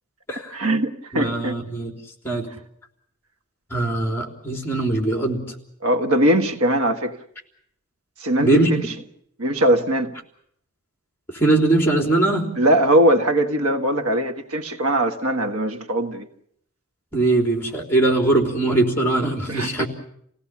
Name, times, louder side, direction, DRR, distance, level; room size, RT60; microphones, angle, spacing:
voice 1, 0.5-1.5 5.8-7.2 8.2-8.8 9.4-10.1 12.6-16.3 19.5-19.8, right 1 dB, 85° right, 1.6 m, -20 dB
voice 2, 1.1-1.9 2.2-2.5 3.7-5.4 8.4-8.7 11.3-12.5 17.1-19.9, right 2 dB, 10° left, 3.7 m, -21 dB
28.0 x 17.5 x 7.2 m
head